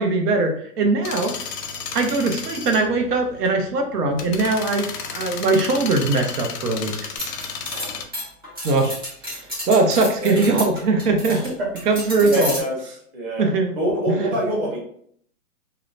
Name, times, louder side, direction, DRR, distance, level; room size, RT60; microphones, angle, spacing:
voice 1, 0.0-1.3 1.9-7.0 8.6-8.9 9.2-11.4 11.9-12.6 13.4-13.8 14.1-14.3, right 3 dB, 80° right, 5 dB, 0.8 m, -21 dB
sound 1, 1.0-8.0, left 6 dB, 85° left, 0.7 m, -33 dB
sound 2, 7.2-11.5 11.8-12.6, left 1 dB, 15° right, 0.3 m, -31 dB
voice 2, 11.3-11.7 12.2-12.8 13.1-13.5 13.8-14.8, right 1 dB, 35° right, -3 dB, 1.1 m, -25 dB
2.8 x 2.0 x 2.4 m, 0.64 s
hypercardioid pair, 140°, 46 cm